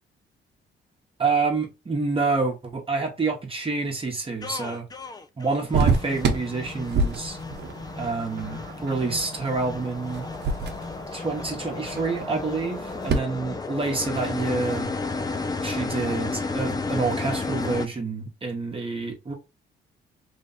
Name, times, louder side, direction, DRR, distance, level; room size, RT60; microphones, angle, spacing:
voice 1, 1.2-4.9 5.4-7.4 8.0-10.3 11.1-14.9 15.6-19.3, right 4 dB, 25° right, 1.1 m, -28 dB
sound 1, 4.4-17.9, left 3 dB, 20° left, 0.5 m, -33 dB
sound 2, 5.7-13.2, right 4 dB, 55° right, 0.9 m, -29 dB
3.4 x 2.5 x 4.0 m
cardioid pair, 90°, 20 cm